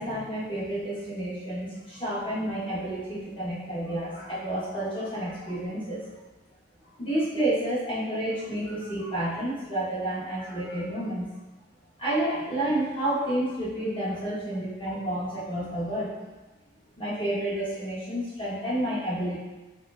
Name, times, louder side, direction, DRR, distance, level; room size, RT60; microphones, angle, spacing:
voice 1, 0.0-6.1 7.0-11.3 12.0-16.2 17.0-19.4, right 1 dB, 25° left, -9 dB, 1.2 m, -30 dB
3.2 x 2.8 x 3.3 m, 1.1 s
head